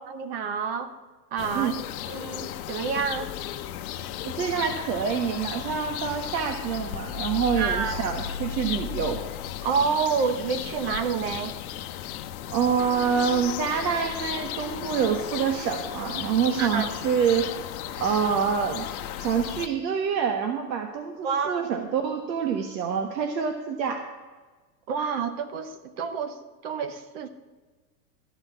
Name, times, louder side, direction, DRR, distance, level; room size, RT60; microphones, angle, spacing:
voice 1, 0.1-0.9 1.3-1.7 2.0-3.3 7.6-8.0 9.6-11.6 16.6-16.9 21.2-21.7 24.9-26.4 26.6-27.3, right 6 dB, 35° right, 11 dB, 0.9 m, -28 dB
sound 1, 1.4-19.7, left 11 dB, 55° left, 1.0 m, -35 dB
voice 2, 4.3-9.2 12.5-17.5 18.0-18.9 19.2-24.0, right 7 dB, 80° right, 6 dB, 1.4 m, -26 dB
13.5 x 6.0 x 8.3 m, 1.3 s
supercardioid pair, 170°, 50 cm